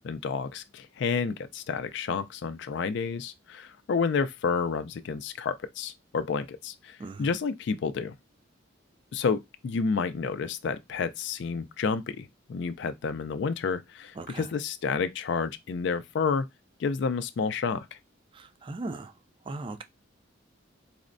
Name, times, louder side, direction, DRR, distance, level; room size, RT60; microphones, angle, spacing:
voice 1, 0.0-8.2 9.1-16.5 16.8-18.0, left 5 dB, 65° left, 0.3 m, -30 dB
voice 2, 7.0-7.4 14.2-14.5 18.3-19.1 19.4-19.8, right 2 dB, 25° right, 0.3 m, -38 dB
4.2 x 2.0 x 2.5 m
head